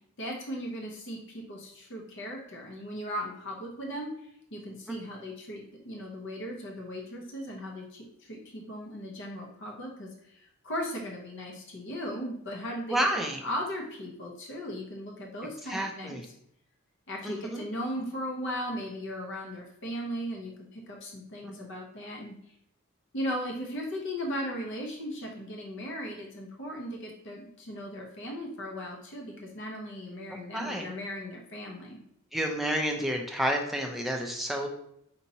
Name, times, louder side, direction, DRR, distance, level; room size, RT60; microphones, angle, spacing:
voice 1, 0.2-16.1 17.1-22.3 23.1-32.0, equal, 55° left, -1 dB, 0.7 m, -37 dB
voice 2, 12.9-13.4 15.7-16.2 17.2-17.6 21.4-21.5 30.5-30.9 32.3-34.7, equal, ahead, 2 dB, 0.4 m, -30 dB
5.2 x 2.9 x 2.7 m, 0.73 s
head